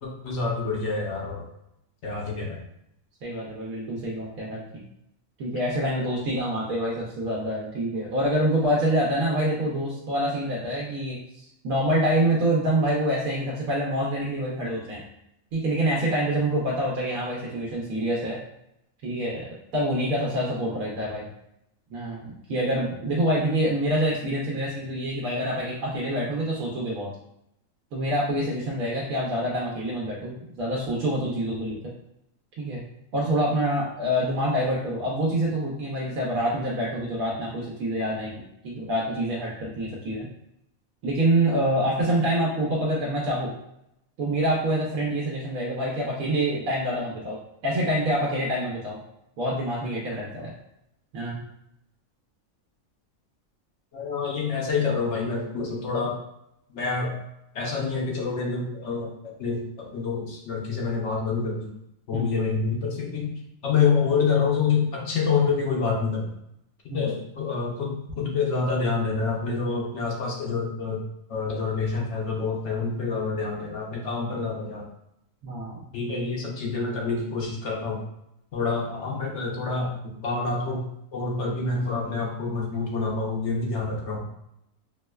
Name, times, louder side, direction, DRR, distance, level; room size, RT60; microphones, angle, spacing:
voice 1, 0.0-1.4 2.0-2.6 53.9-56.2 56.7-57.2 57.5-61.7 62.1-66.3 66.9-71.0 71.3-74.9 75.9-78.0 78.5-79.9 80.2-80.8 81.1-84.2, left 4 dB, 65° left, -1 dB, 0.9 m, -27 dB
voice 2, 3.2-4.8 5.4-11.2 11.6-15.0 15.5-18.4 19.0-19.4 19.7-21.3 21.9-27.1 27.9-31.8 32.6-32.8 33.1-38.3 38.6-40.3 41.0-43.5 44.2-47.4 47.6-49.0 49.4-50.5 51.1-51.4 62.1-62.3 66.9-67.0 75.4-75.8, right 1 dB, 90° right, -4 dB, 1.1 m, -26 dB
4.5 x 2.1 x 2.2 m, 0.80 s
omnidirectional pair, 1.4 m